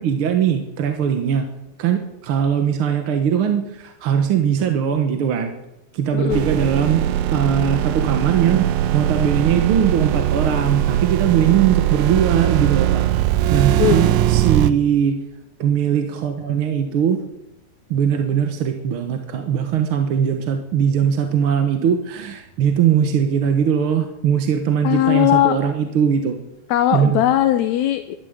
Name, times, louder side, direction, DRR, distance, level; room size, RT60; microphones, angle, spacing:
voice 1, 0.0-1.5 1.8-5.6 5.9-7.0 7.3-8.7 8.9-13.0 13.5-15.2 15.6-17.2 17.9-26.4 26.9-27.2, right 8 dB, 55° right, 6 dB, 1.7 m, -20 dB
voice 2, 6.1-6.5 13.8-14.1 24.8-25.6 26.7-28.1, left 13 dB, 75° left, 8 dB, 2.0 m, -18 dB
sound 1, 6.3-14.7, right 12 dB, 85° right, 2.2 m, -20 dB
12.5 x 12.5 x 9.2 m, 0.90 s
omnidirectional pair, 3.4 m